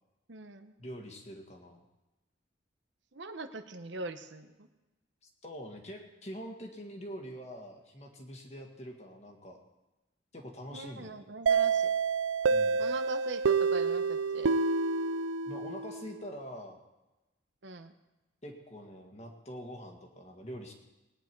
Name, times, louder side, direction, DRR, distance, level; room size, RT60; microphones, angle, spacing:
voice 1, 0.3-0.7 3.1-4.7 10.7-11.9 12.8-14.6 17.6-17.9, right 2 dB, 70° right, 8 dB, 1.0 m, -42 dB
voice 2, 0.8-1.8 5.4-9.6 10.3-11.2 12.5-12.8 15.5-16.8 18.4-20.7, equal, 35° left, 2 dB, 1.8 m, -44 dB
sound 1, 11.5-16.1, right 5 dB, 90° right, 0.5 m, -28 dB
20.0 x 9.7 x 4.6 m, 1.0 s
head